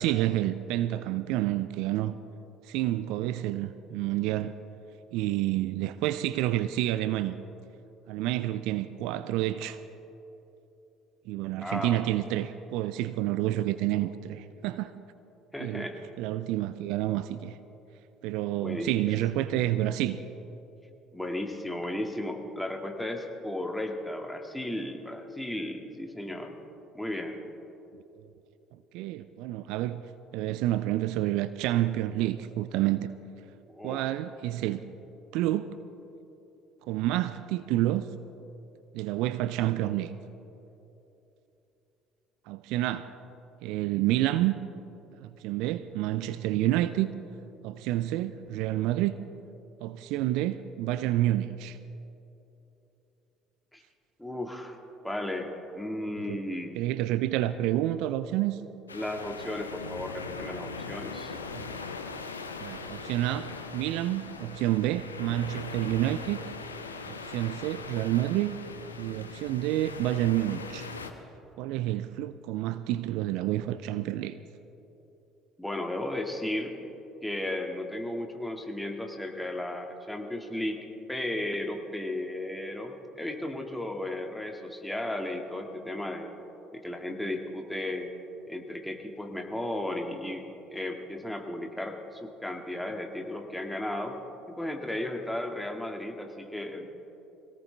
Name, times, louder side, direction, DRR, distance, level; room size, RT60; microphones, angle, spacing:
voice 1, 0.0-2.2 2.6-4.5 5.1-7.4 8.1-9.8 11.3-14.9 15.6-15.9 16.2-17.6 18.2-20.2 28.2-28.3 28.9-30.0 30.3-33.1 33.8-34.8 35.3-35.7 36.9-38.1 38.9-40.1 42.5-43.1 43.6-44.6 45.2-47.1 47.6-49.1 49.8-51.8 56.2-56.4 56.8-58.6 61.5-61.7 62.6-66.4 67.1-68.5 69.0-70.9 71.6-74.3, right 14 dB, 60° right, 13 dB, 0.4 m, -29 dB
voice 2, 11.6-12.1 15.5-16.0 18.6-19.1 21.1-26.6 26.9-27.4 33.7-34.1 53.7-53.8 54.2-54.8 55.0-56.8 58.9-61.4 75.6-76.8 77.2-80.8 81.1-86.3 86.7-88.1 88.5-94.2 94.6-96.9, left 1 dB, 5° left, 3 dB, 1.9 m, -35 dB
sound 1, 58.9-71.1, left 4 dB, 85° left, 0.7 m, -40 dB
23.0 x 17.5 x 3.4 m, 3.0 s
figure-of-eight pair, 55°, 0 cm